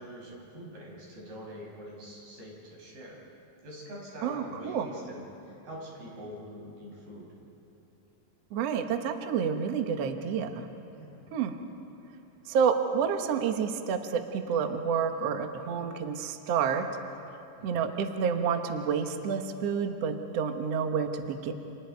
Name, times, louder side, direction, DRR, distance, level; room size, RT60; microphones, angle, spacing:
voice 1, 0.0-3.2 3.6-7.3 10.9-11.2 17.6-17.8, equal, 60° right, -4 dB, 8.1 m, -44 dB
voice 2, 4.2-4.9 8.5-10.7 11.3-11.5 12.4-16.9 17.6-21.5, right 7 dB, 90° right, 6 dB, 1.4 m, -29 dB
30.0 x 29.0 x 4.6 m, 2.9 s
omnidirectional pair, 5.0 m